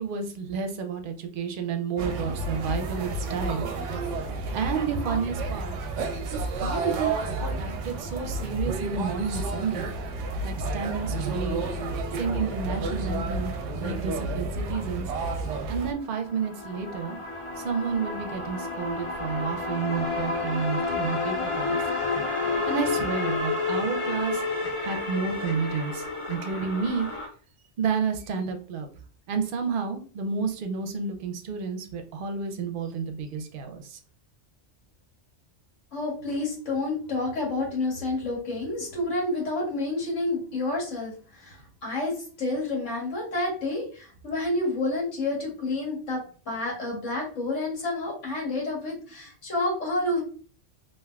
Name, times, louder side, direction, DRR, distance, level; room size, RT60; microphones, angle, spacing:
voice 1, 0.0-3.7 4.5-5.8 6.3-9.9 10.4-11.6 12.2-13.5 13.8-15.1 15.7-17.2 17.6-21.8 22.7-24.4 24.8-27.1 27.8-28.9 29.3-34.0, right 5 dB, 55° right, 6 dB, 0.6 m, -30 dB
sound 1, 2.0-15.9, right 2 dB, 90° right, 0.9 m, -31 dB
sound 2, 15.9-27.3, left 3 dB, 40° left, 0.5 m, -30 dB
voice 2, 35.9-50.2, left 2 dB, 85° left, -3 dB, 1.6 m, -29 dB
3.4 x 2.5 x 2.3 m, 0.41 s
omnidirectional pair, 1.2 m